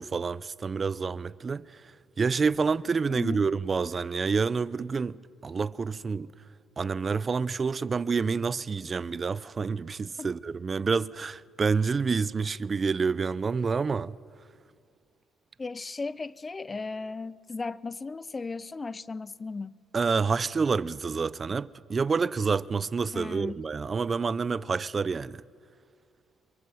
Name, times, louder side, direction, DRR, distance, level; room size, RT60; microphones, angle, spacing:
voice 1, 0.0-1.9 2.2-6.3 6.8-14.2 19.9-25.4, right 5 dB, 35° right, 0.7 m, -28 dB
voice 2, 3.1-3.5 10.2-10.3 15.6-19.8 23.1-23.6, left 3 dB, 25° left, 0.7 m, -36 dB
25.5 x 23.0 x 7.9 m
supercardioid pair, 80°, 0 cm